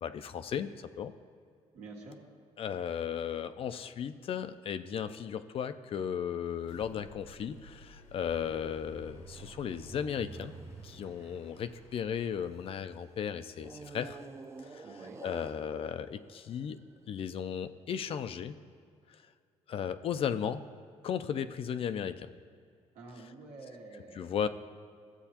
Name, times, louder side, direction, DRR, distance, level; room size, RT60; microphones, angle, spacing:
voice 1, 0.0-0.7 1.0-1.1 2.6-10.5 10.8-14.2 14.7-14.8 15.2-16.8 17.1-18.5 19.7-20.6 21.0-22.3 24.1-24.5, left 8 dB, 50° left, 11 dB, 0.4 m, -35 dB
voice 2, 1.7-2.2 14.8-15.2 22.9-24.3, right 3 dB, 80° right, -1 dB, 1.5 m, -48 dB
sound 1, 6.4-16.1, equal, 80° left, 1.0 m, -59 dB
sound 2, 8.1-12.8 13.6-17.0, right 4 dB, 25° right, 0.5 m, -50 dB
14.0 x 7.8 x 2.9 m, 2.2 s
cardioid pair, 100°, 12 cm